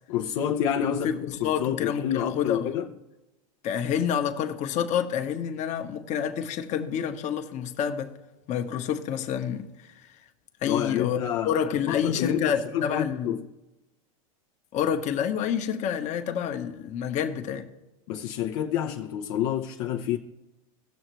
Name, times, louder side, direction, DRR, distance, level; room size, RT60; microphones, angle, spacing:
voice 1, 0.1-2.9 10.6-11.5 11.9-13.5 18.1-20.2, left 9 dB, 60° left, 0.7 m, -28 dB
voice 2, 0.8-2.8 3.6-8.1 8.5-10.1 10.6-13.4 14.7-17.7, left 8 dB, 40° left, 1.1 m, -28 dB
17.5 x 6.5 x 3.1 m
hypercardioid pair, 115°, 19 cm